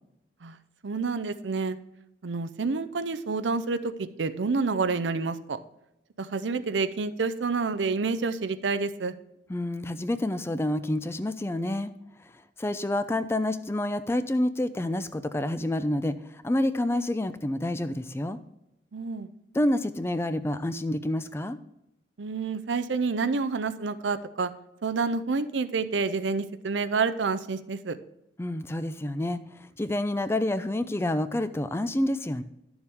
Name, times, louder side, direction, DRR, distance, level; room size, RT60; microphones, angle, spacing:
voice 1, 0.8-1.8 2.2-3.9 4.2-5.6 6.2-9.1 18.9-19.3 22.2-24.5 24.8-28.0, right 4 dB, 90° right, 12 dB, 0.6 m, -28 dB
voice 2, 9.5-11.9 12.6-18.4 19.5-21.6 28.4-32.4, left 1 dB, 15° left, 12 dB, 0.4 m, -28 dB
11.0 x 7.1 x 3.5 m, 0.84 s
head